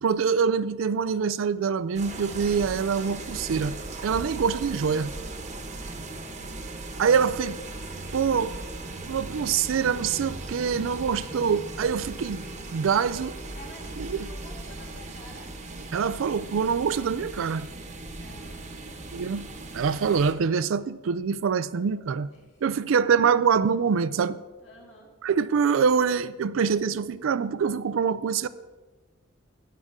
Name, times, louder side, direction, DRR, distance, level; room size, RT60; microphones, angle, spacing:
voice 1, 0.0-3.8 4.0-5.1 7.0-7.6 8.1-8.5 9.1-12.5 12.7-13.4 14.0-14.3 15.9-17.7 19.1-19.5 19.7-22.3 22.6-24.4 25.2-28.5, right 6 dB, 85° right, 0.4 m, -25 dB
sound 1, 2.0-20.3, right 2 dB, 35° right, 1.1 m, -38 dB
voice 2, 13.6-15.5 18.1-19.5 22.3-23.0 24.6-25.1, left 1 dB, 60° left, 2.6 m, -51 dB
12.5 x 9.4 x 3.7 m
head